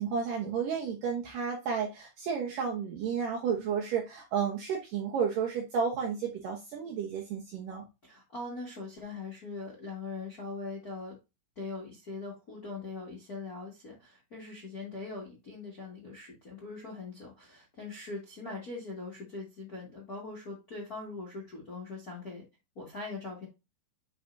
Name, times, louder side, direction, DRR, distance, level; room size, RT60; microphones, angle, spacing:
voice 1, 0.0-7.8, right 6 dB, 75° right, 0 dB, 2.0 m, -32 dB
voice 2, 8.0-11.2 11.5-22.4 22.7-23.5, left 3 dB, 55° left, -3 dB, 1.0 m, -41 dB
10.5 x 4.3 x 2.6 m, 0.25 s
omnidirectional pair, 5.2 m